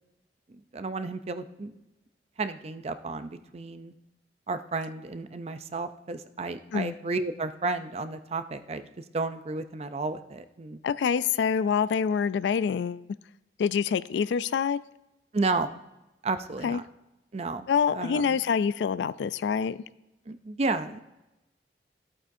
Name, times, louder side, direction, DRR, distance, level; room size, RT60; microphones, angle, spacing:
voice 1, 0.5-1.8 2.4-3.9 4.5-10.8 15.3-15.7 16.2-16.8 17.3-17.7 17.9-18.4 20.3-21.0, right 3 dB, 35° right, 11 dB, 0.5 m, -32 dB
voice 2, 10.8-13.0 13.6-14.8 16.6-16.8 17.7-19.8, left 6 dB, 80° left, 16 dB, 0.3 m, -26 dB
14.0 x 8.5 x 2.7 m, 0.94 s
head